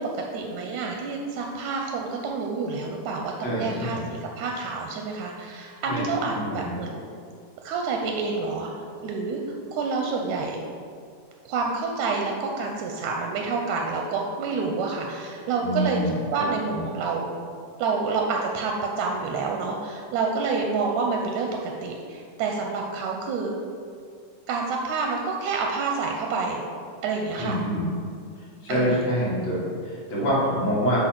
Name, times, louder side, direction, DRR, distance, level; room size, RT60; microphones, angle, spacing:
voice 1, 0.0-7.1 7.6-8.7 9.0-9.4 9.7-10.6 11.5-16.0 16.3-17.3 17.8-23.5 24.5-26.6 27.0-27.6 28.7-29.1, right 4 dB, 80° right, 1 dB, 1.8 m, -28 dB
voice 2, 3.4-4.0 5.9-6.1 6.3-6.7 15.6-16.1 16.6-16.8 27.4-27.9 28.6-31.1, equal, 55° left, -7 dB, 2.6 m, -26 dB
8.3 x 2.8 x 5.9 m, 2.3 s
omnidirectional pair, 3.7 m